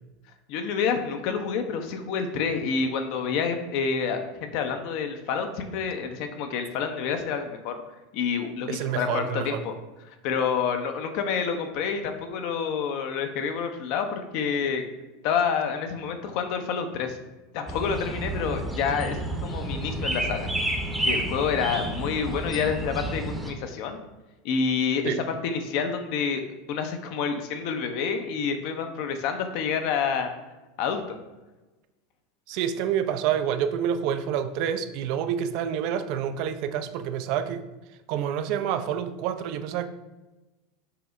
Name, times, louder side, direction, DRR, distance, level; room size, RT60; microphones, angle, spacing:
voice 1, 0.5-7.8 8.1-9.7 10.2-14.8 15.2-17.2 17.5-20.5 21.0-24.0 24.4-30.3 30.8-31.2, left 6 dB, 60° left, 6 dB, 0.5 m, -28 dB
voice 2, 8.7-9.6 25.0-25.2 32.5-37.6 38.1-39.9, right 9 dB, 60° right, 9 dB, 0.3 m, -28 dB
sound 1, 17.7-23.5, right 1 dB, 5° right, 0.7 m, -30 dB
5.7 x 2.1 x 3.6 m, 1.1 s
hypercardioid pair, 95°, 0 cm